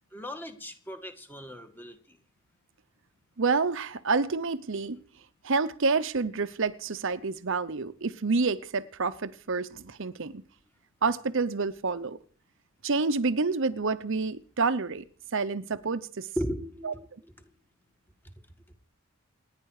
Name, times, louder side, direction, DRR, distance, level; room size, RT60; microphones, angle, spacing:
voice 1, 0.1-2.2 16.4-17.3 18.2-18.3, equal, 10° left, 2.0 m, -37 dB
voice 2, 3.4-5.0 5.4-10.4 11.0-12.2 12.8-15.1 15.3-16.3 16.8-16.9, right 4 dB, 60° right, 0.8 m, -28 dB
28.0 x 10.5 x 4.9 m
head